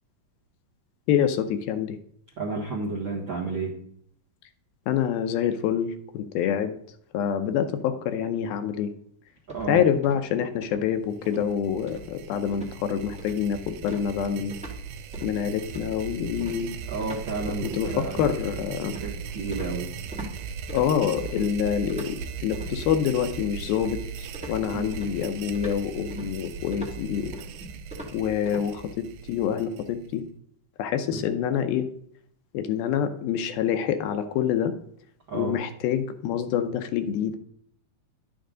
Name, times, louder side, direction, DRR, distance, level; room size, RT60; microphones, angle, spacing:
voice 1, 1.1-2.0 4.9-6.7 7.1-8.9 9.7-14.6 15.2-16.7 17.6-19.0 20.7-27.3 28.1-30.3 30.8-31.9 32.5-34.7 35.3-37.4, left 8 dB, 80° left, 8 dB, 2.4 m, -26 dB
voice 2, 2.4-3.8 9.5-9.8 16.9-18.2 18.9-19.9 24.7-24.8 35.3-35.6, right 3 dB, 60° right, -2 dB, 1.3 m, -31 dB
sound 1, 9.5-10.3 10.6-10.9 11.2-11.5 11.9-12.3 12.5-12.8 13.2-13.5 13.9-14.8 15.1-15.4 15.7-20.3 20.7-21.5 21.9-22.7 23.2-24.0 24.3-28.6, equal, 10° right, 0.4 m, -42 dB
sound 2, 11.1-30.2, right 6 dB, 85° right, 2.5 m, -38 dB
11.5 x 8.9 x 3.8 m, 0.66 s
omnidirectional pair, 4.6 m